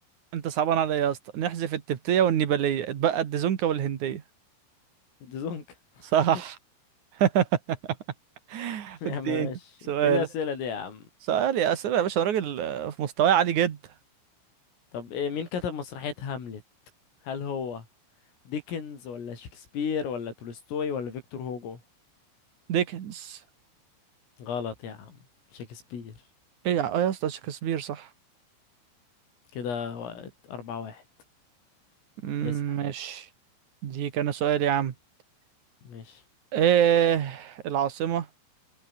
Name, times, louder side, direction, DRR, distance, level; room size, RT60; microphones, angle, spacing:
voice 1, 0.3-4.2 6.1-6.6 7.2-7.5 8.5-9.5 9.9-10.3 11.3-13.8 22.7-23.4 26.6-28.1 32.2-33.3 33.8-34.9 36.5-38.3, right 9 dB, 55° right, 2.3 m, -25 dB
voice 2, 5.2-5.6 9.0-11.0 14.9-16.6 17.2-17.9 18.5-21.8 24.4-25.2 25.5-26.2 29.5-31.0 32.4-32.8 35.8-36.2, left 6 dB, 85° left, 8.1 m, -34 dB
omnidirectional pair, 5.7 m